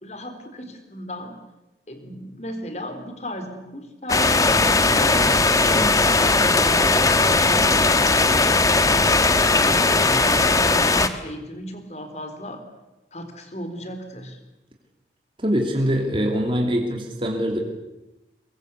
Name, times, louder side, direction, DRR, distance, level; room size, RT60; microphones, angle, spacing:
voice 1, 0.0-1.4 1.9-8.2 8.8-12.6 13.1-14.4, equal, 40° left, 7 dB, 3.9 m, -35 dB
sound 1, 4.1-11.1, left 3 dB, 20° left, 1.3 m, -18 dB
voice 2, 15.4-17.6, equal, 30° right, 2 dB, 3.0 m, -24 dB
23.5 x 22.5 x 8.3 m, 0.98 s
head